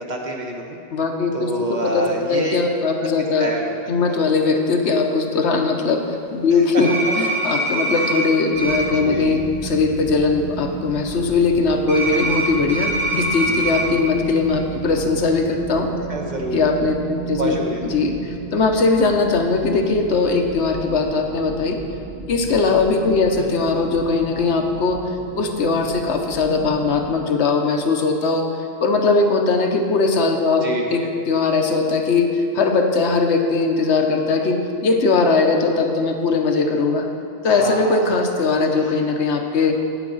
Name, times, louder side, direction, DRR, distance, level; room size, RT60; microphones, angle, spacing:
voice 1, 0.0-0.8 1.3-2.6 3.4-3.7 4.1-4.2 6.5-6.6 7.1-7.2 8.0-8.1 8.9-9.4 16.1-16.6 17.4-17.8 23.4-23.6 30.6-31.1 37.5-38.2, right 1 dB, 45° right, 0 dB, 1.0 m, -27 dB
voice 2, 0.9-3.5 3.9-6.0 6.3-15.9 16.5-17.5 17.8-21.8 22.3-25.0 25.3-28.5 28.8-37.1 37.4-39.8, left 4 dB, 75° left, 4 dB, 1.1 m, -20 dB
sound 1, 6.8-8.3 8.6-8.8 11.9-13.8, right 1 dB, 65° right, 2.2 m, -23 dB
sound 2, 8.5-27.1, right 4 dB, 85° right, 1.6 m, -34 dB
9.3 x 8.5 x 3.9 m, 2.5 s
omnidirectional pair, 1.2 m